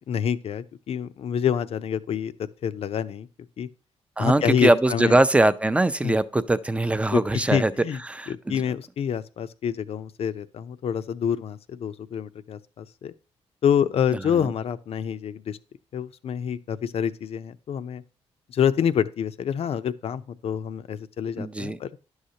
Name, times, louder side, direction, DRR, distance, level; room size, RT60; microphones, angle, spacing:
voice 1, 0.1-3.3 3.6-3.7 4.2-5.2 6.0-6.1 7.1-8.0 8.3-13.1 13.6-15.6 15.9-18.0 18.5-21.9, left 8 dB, 60° left, 0.5 m, -27 dB
voice 2, 4.2-7.7 8.1-8.6 14.4-14.5 21.4-21.8, right 2 dB, 10° right, 0.5 m, -22 dB
11.0 x 6.4 x 2.8 m
cardioid pair, 100°, 11 cm